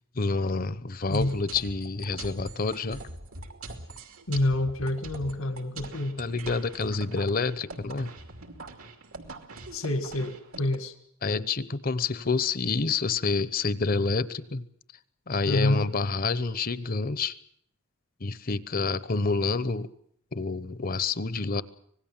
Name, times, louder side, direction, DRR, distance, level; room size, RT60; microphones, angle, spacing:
voice 1, 0.2-3.0 6.2-8.1 11.2-14.6 15.3-17.4 18.2-19.9 20.3-21.6, left 4 dB, 45° left, 16 dB, 0.9 m, -28 dB
sound 1, 1.1-10.8, right 2 dB, 85° right, 2.7 m, -43 dB
voice 2, 4.3-6.2 9.7-10.9 15.4-15.8, left 1 dB, 80° left, 9 dB, 1.9 m, -27 dB
25.5 x 19.0 x 7.3 m, 0.68 s
head